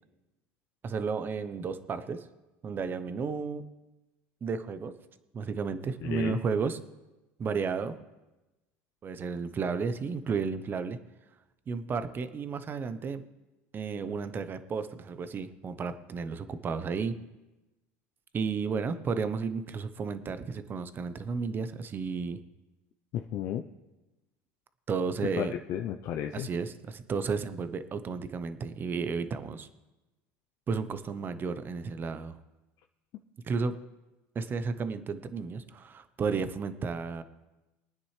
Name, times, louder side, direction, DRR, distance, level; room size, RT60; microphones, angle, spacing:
voice 1, 0.8-2.2 2.6-3.7 4.4-4.9 5.3-6.8 7.4-8.0 9.0-11.0 11.7-13.2 13.7-17.2 18.3-22.4 24.9-25.5 26.3-29.7 30.7-32.4 33.4-33.8 34.3-37.2, right 5 dB, 30° right, 11 dB, 0.9 m, -33 dB
voice 2, 6.0-6.4 23.1-23.6 25.4-26.5, left 10 dB, 55° left, 5 dB, 0.6 m, -33 dB
22.5 x 9.4 x 3.3 m, 1.0 s
supercardioid pair, 110°, 7 cm